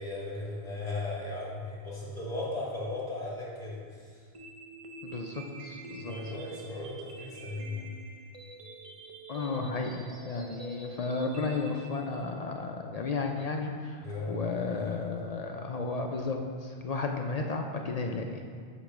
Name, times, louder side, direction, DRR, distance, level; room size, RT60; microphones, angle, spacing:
voice 1, 0.0-4.1 6.1-7.9 14.0-15.1, left 2 dB, 35° left, -6 dB, 2.0 m, -37 dB
sound 1, 4.3-12.3, right 3 dB, 45° right, 0.5 m, -46 dB
voice 2, 5.0-6.3 9.3-18.4, left 3 dB, 55° left, 2 dB, 0.4 m, -33 dB
8.2 x 3.0 x 6.0 m, 2.1 s
omnidirectional pair, 1.1 m